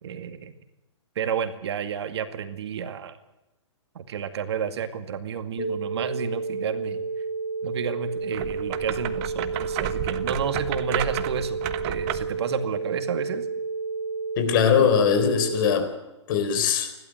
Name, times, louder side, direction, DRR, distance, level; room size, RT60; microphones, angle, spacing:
voice 1, 0.0-0.5 1.2-3.2 3.9-7.0 7.6-11.6 11.8-13.5, right 7 dB, 60° right, 9 dB, 2.2 m, -31 dB
sound 1, 5.6-15.6, right 4 dB, 80° left, 3.8 m, -31 dB
sound 2, 8.3-12.4, right 13 dB, 35° right, 1.3 m, -32 dB
voice 2, 14.4-15.9 16.3-16.9, left 7 dB, 45° left, 9 dB, 4.1 m, -21 dB
30.0 x 12.5 x 7.8 m, 1.0 s
hypercardioid pair, 145°, 16 cm